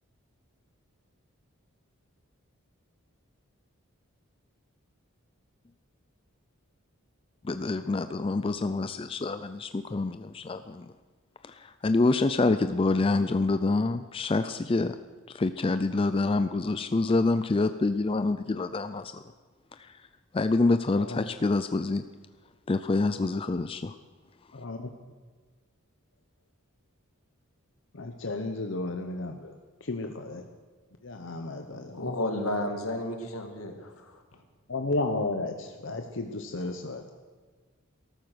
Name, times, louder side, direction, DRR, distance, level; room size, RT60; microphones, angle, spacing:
voice 1, 7.4-10.9 11.4-15.0 15.3-19.2 19.8-19.9 20.3-22.0 22.7-23.9, left 3 dB, 25° left, 10 dB, 0.4 m, -26 dB
voice 2, 20.9-21.3 24.5-24.9 27.9-29.5 29.8-30.4 31.0-32.0 34.7-37.1, left 2 dB, 60° left, 5 dB, 0.8 m, -33 dB
voice 3, 31.9-34.2, left 1 dB, 85° left, 4 dB, 2.1 m, -32 dB
14.0 x 13.0 x 6.3 m, 1.4 s
head